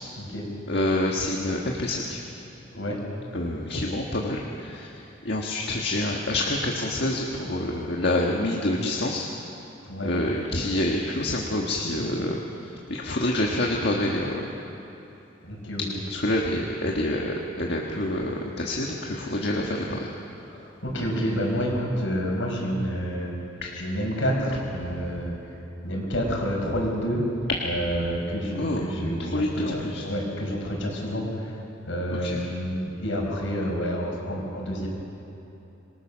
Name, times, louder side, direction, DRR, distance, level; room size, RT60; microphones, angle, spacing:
voice 1, 0.7-2.2 3.3-9.3 10.0-14.5 16.1-20.1 23.6-23.7 24.9-25.2 28.5-28.8 29.2-30.0 32.1-32.4, left 1 dB, 55° left, -1 dB, 1.6 m, -27 dB
voice 2, 15.4-15.8 20.5-23.3 23.7-25.3 25.8-27.3 27.6-31.6 31.9-34.9, equal, 75° left, 0 dB, 5.4 m, -28 dB
26.5 x 20.5 x 6.4 m, 3.0 s
head